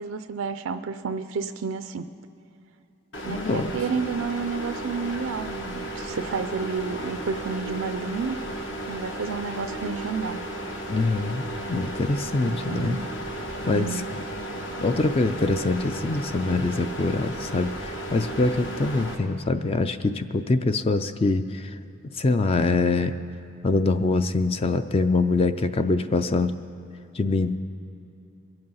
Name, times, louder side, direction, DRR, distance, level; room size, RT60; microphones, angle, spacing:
voice 1, 0.0-2.0 3.3-8.4 8.9-10.4 12.4-13.1 13.7-14.1, right 5 dB, 85° right, 10 dB, 0.4 m, -30 dB
sound 1, 3.1-19.2, right 1 dB, 60° left, 1.3 m, -34 dB
voice 2, 3.3-3.8 10.9-13.0 13.6-14.2 14.8-21.8 22.1-23.1 23.6-26.5 27.1-27.6, left 3 dB, 30° left, 10 dB, 0.3 m, -24 dB
22.0 x 7.9 x 5.5 m, 2.9 s
head